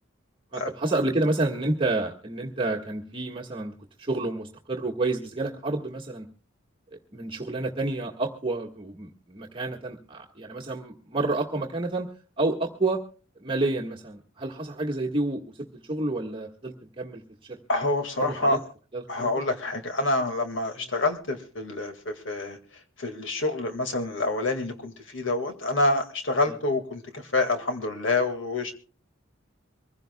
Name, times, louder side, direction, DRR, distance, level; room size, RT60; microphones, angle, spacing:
voice 1, 0.5-3.7 4.0-6.3 6.9-12.1 12.4-13.0 13.4-15.4 15.9-17.6 18.2-18.6 18.9-19.3 26.4-26.6, right 2 dB, 25° right, -1 dB, 1.6 m, -29 dB
voice 2, 17.7-18.6 19.1-22.6 23.0-28.7, left 2 dB, 70° left, 6 dB, 2.0 m, -27 dB
24.5 x 16.0 x 2.3 m, 0.39 s
head